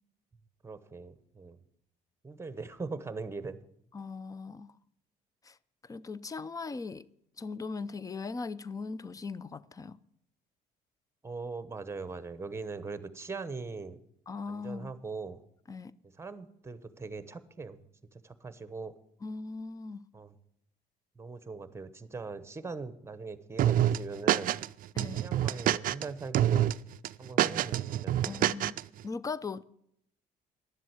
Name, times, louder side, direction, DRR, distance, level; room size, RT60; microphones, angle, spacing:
voice 1, 0.6-1.6 2.2-3.6 11.2-14.0 14.5-15.4 16.2-17.8 18.1-18.9 20.1-20.4 21.2-24.5 25.2-26.7 27.2-28.4, right 4 dB, 15° right, 1.0 m, -41 dB
voice 2, 3.9-4.7 5.4-5.6 5.8-7.1 7.4-10.0 14.3-14.9 15.7-15.9 19.2-20.0 24.9-25.2 28.2-28.8 29.0-29.6, left 4 dB, 20° left, 0.5 m, -39 dB
sound 1, 23.6-24.7 25.0-26.0 26.3-26.7 27.0-28.8, right 12 dB, 55° right, 0.4 m, -26 dB
11.0 x 7.5 x 8.2 m
cardioid pair, 110°, 17 cm